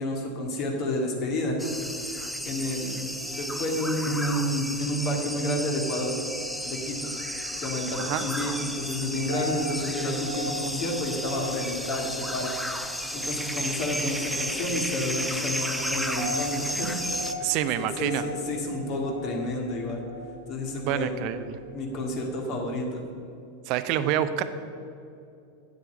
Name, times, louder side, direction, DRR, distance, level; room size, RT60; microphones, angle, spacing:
voice 1, 0.0-1.6 2.5-3.0 3.3-6.1 6.6-7.1 7.6-12.5 13.1-16.9 17.4-20.0 20.5-21.1 21.7-23.0, left 1 dB, 40° left, 1 dB, 2.1 m, -30 dB
sound 1, 1.6-17.3, equal, ahead, 0.6 m, -33 dB
sound 2, 5.9-22.3, left 1 dB, 90° right, 1.5 m, -41 dB
voice 2, 17.4-18.2 20.9-21.6 23.7-24.4, right 11 dB, 45° right, 12 dB, 0.6 m, -27 dB
8.5 x 7.9 x 6.9 m, 2.6 s
figure-of-eight pair, 85°, 0 cm